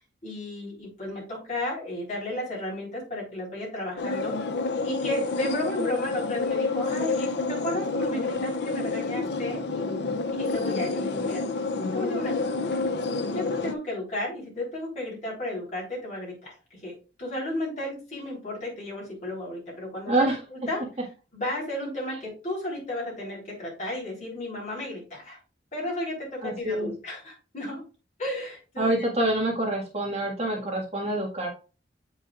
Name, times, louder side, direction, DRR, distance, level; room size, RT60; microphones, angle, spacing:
voice 1, 0.2-4.4 4.8-11.4 11.9-12.5 13.3-20.8 21.3-25.4 25.7-27.8 28.2-29.1 30.5-30.7, left 1 dB, 40° left, -4 dB, 3.7 m, -33 dB
sound 1, 4.0-13.7, left 3 dB, 65° left, 0.5 m, -29 dB
voice 2, 20.1-20.4 26.4-26.9 28.8-31.5, right 1 dB, 35° right, -2 dB, 1.6 m, -26 dB
8.0 x 5.4 x 2.4 m, 0.33 s
head